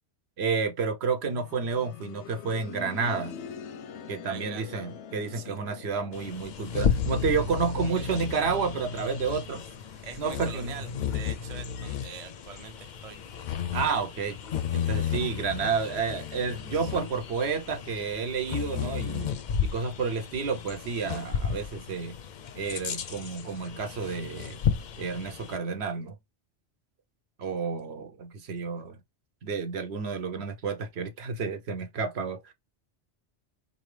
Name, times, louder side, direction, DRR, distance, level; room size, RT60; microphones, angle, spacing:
voice 1, 0.4-3.4 4.1-9.6 10.2-10.7 13.7-14.4 14.7-19.3 19.6-22.1 22.6-24.6 25.0-26.1 27.4-29.0 29.4-32.5, right 5 dB, 70° right, 1.0 m, -30 dB
sound 1, 1.3-12.0 12.3-12.4 13.3-13.4, left 7 dB, 90° left, 0.9 m, -46 dB
voice 2, 4.3-4.7 5.3-5.6 7.8-8.1 10.0-13.2 16.7-16.9, right 7 dB, 40° right, 0.6 m, -44 dB
Bird vocalization bird call bird song, 6.1-25.6, left 8 dB, 60° left, 0.5 m, -33 dB
4.0 x 2.8 x 3.2 m
omnidirectional pair, 1.1 m